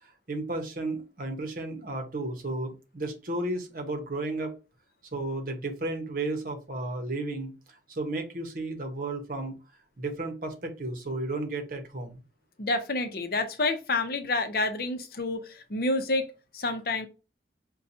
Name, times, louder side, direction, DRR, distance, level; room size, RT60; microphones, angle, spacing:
voice 1, 0.0-4.5 5.1-9.5 10.0-12.2, right 2 dB, 50° right, 4 dB, 0.9 m, -33 dB
voice 2, 12.6-16.3 16.5-17.1, left 2 dB, 55° left, 7 dB, 0.6 m, -28 dB
5.5 x 2.3 x 2.7 m, 0.31 s
head